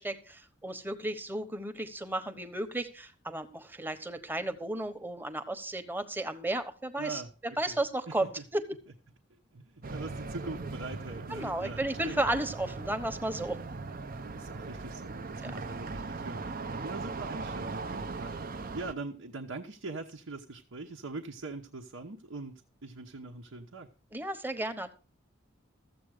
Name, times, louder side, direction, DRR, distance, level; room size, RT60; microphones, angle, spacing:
voice 1, 0.0-7.2 7.6-8.6 11.3-13.6 15.4-15.5 24.1-24.9, right 1 dB, 10° right, 9 dB, 1.0 m, -33 dB
voice 2, 7.0-7.8 8.1-8.4 9.5-12.2 12.7-12.8 14.1-23.9, right 3 dB, 70° right, 2 dB, 1.0 m, -42 dB
sound 1, 9.8-18.9, right 3 dB, 45° right, 0.7 m, -39 dB
14.0 x 7.9 x 4.9 m, 0.35 s
head